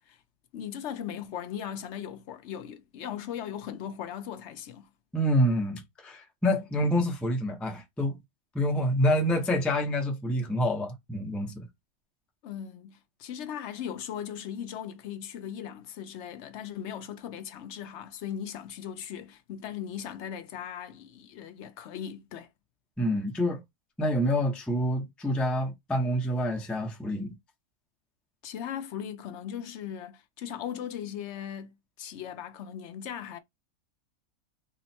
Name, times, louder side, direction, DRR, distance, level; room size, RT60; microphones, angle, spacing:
voice 1, 0.5-4.9 12.4-22.5 28.4-33.4, left 9 dB, 65° left, 0.7 m, -38 dB
voice 2, 5.1-8.2 8.5-11.6 23.0-23.6 24.0-27.3, equal, ahead, 0.4 m, -27 dB
3.8 x 2.1 x 4.2 m
omnidirectional pair, 1.5 m